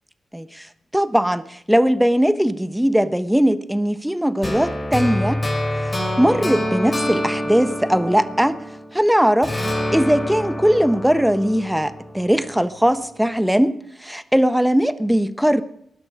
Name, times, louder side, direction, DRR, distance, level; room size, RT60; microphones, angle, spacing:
voice 1, 0.3-0.7 0.9-5.4 5.8-8.6 8.9-9.5 9.9-15.6, equal, 5° right, 13 dB, 1.2 m, -19 dB
sound 1, 4.4-9.0 9.4-12.5, left 1 dB, 30° left, 5.9 m, -26 dB
19.5 x 11.5 x 5.0 m, 0.73 s
supercardioid pair, 45°, 0 cm